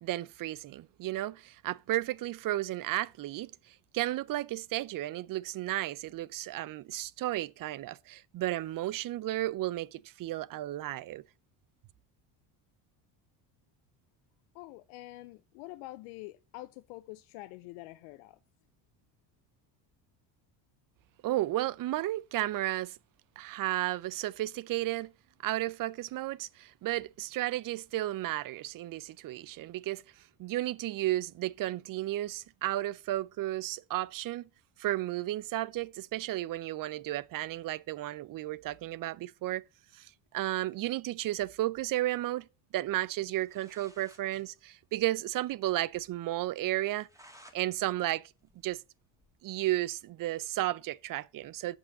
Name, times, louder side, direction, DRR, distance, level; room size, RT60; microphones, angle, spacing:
voice 1, 0.0-11.2 21.2-23.0 23.4-25.1 25.4-30.0 30.4-34.4 34.8-39.6 39.9-42.5 42.7-47.1 47.5-48.3 48.6-48.8 49.4-51.8, right 15 dB, 45° right, 0.5 m, -33 dB
voice 2, 14.5-18.4, left 18 dB, 85° left, 0.7 m, -46 dB
sound 1, 43.4-44.3 44.6-44.7 44.9-45.0 45.4-45.5 45.9-46.0 46.7-47.6 48.0-49.3, equal, 5° right, 1.9 m, -58 dB
6.8 x 5.6 x 6.5 m
supercardioid pair, 90°, 47 cm